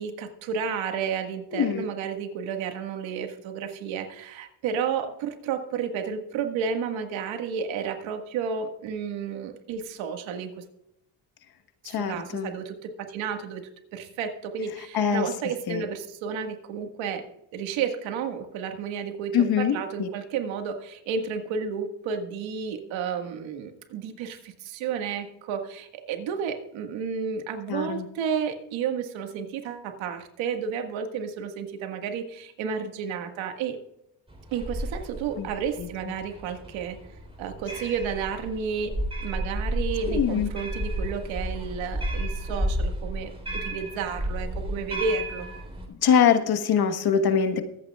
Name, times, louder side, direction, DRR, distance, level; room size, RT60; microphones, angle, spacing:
voice 1, 0.0-10.6 11.8-17.2 17.5-33.8 34.5-37.0 37.4-45.5, right 6 dB, 80° right, 5 dB, 1.8 m, -32 dB
voice 2, 1.5-1.8 11.8-12.5 14.9-15.3 15.7-15.8 19.3-20.1 27.7-28.0 35.4-35.5 35.8-35.9 40.1-40.5 45.9-47.6, left 7 dB, 50° left, 8 dB, 1.4 m, -23 dB
sound 1, 34.3-45.8, right 1 dB, 10° right, 3.5 m, -32 dB
23.5 x 8.7 x 2.4 m, 0.84 s
cardioid pair, 100°, 46 cm